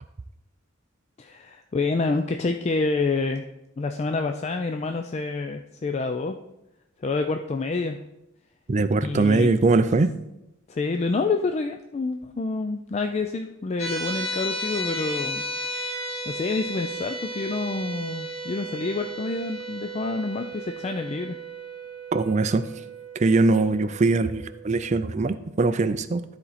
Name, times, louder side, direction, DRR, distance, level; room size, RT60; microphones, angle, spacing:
voice 1, 1.2-3.4 3.8-6.4 7.0-8.0 9.0-9.5 10.7-15.4 16.3-21.4, left 3 dB, 30° left, 6 dB, 0.3 m, -28 dB
voice 2, 8.7-10.1 22.1-22.7 23.2-26.2, right 3 dB, 35° right, 11 dB, 0.4 m, -21 dB
sound 1, 13.8-25.0, right 1 dB, 90° left, 1.9 m, -34 dB
12.5 x 4.3 x 4.1 m, 0.90 s
head